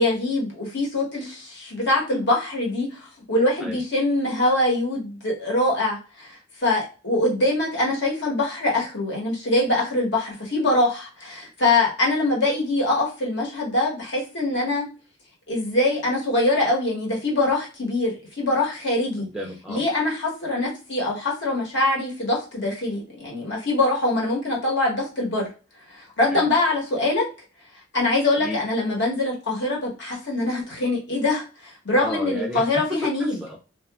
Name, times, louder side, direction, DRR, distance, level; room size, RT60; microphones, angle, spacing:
voice 1, 0.0-3.0 3.3-14.9 15.5-19.3 19.7-25.5 25.9-27.2 27.9-33.4, left 2 dB, 60° left, -3 dB, 1.1 m, -23 dB
voice 2, 19.2-19.8 26.3-26.5 28.4-28.6 32.0-32.6 33.0-33.6, equal, 5° right, -1 dB, 0.4 m, -32 dB
2.8 x 2.3 x 2.3 m, 0.33 s
head